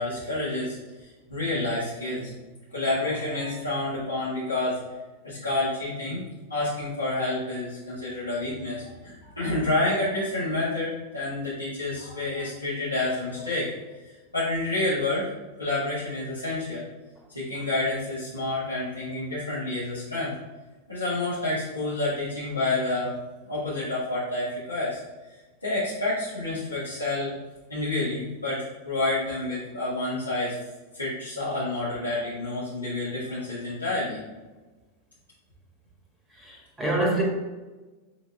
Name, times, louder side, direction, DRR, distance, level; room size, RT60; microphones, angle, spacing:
voice 1, 0.0-2.3 2.7-4.8 5.2-6.2 6.5-13.7 14.0-15.3 15.6-16.9 17.3-20.3 20.9-23.1 23.4-25.0 25.3-27.3 27.7-30.6 30.9-34.2, left 2 dB, 85° left, -13 dB, 2.0 m, -29 dB
voice 2, 36.3-37.2, right 1 dB, 5° right, -2 dB, 1.8 m, -26 dB
7.0 x 4.1 x 3.4 m, 1.2 s
figure-of-eight pair, 90°, 0 cm